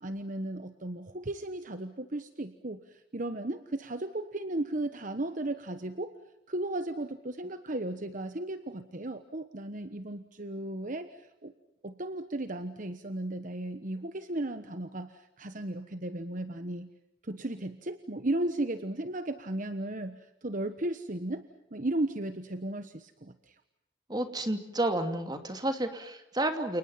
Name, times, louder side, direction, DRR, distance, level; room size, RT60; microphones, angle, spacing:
voice 1, 0.0-6.2 6.5-11.5 11.8-16.9 17.2-21.4 21.7-23.5, right 1 dB, 40° right, 10 dB, 1.2 m, -35 dB
voice 2, 24.1-26.8, right 1 dB, 20° right, 6 dB, 2.7 m, -31 dB
29.5 x 29.5 x 5.8 m, 0.83 s
head